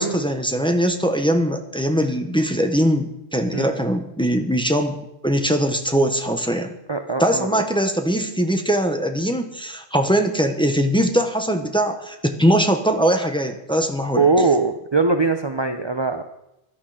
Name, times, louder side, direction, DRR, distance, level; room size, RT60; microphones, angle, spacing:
voice 1, 0.0-6.7 7.2-14.3, equal, 5° left, 5 dB, 1.1 m, -21 dB
voice 2, 6.9-7.5 14.1-16.2, right 4 dB, 30° right, 6 dB, 0.8 m, -21 dB
16.5 x 11.5 x 5.0 m, 0.87 s
omnidirectional pair, 1.1 m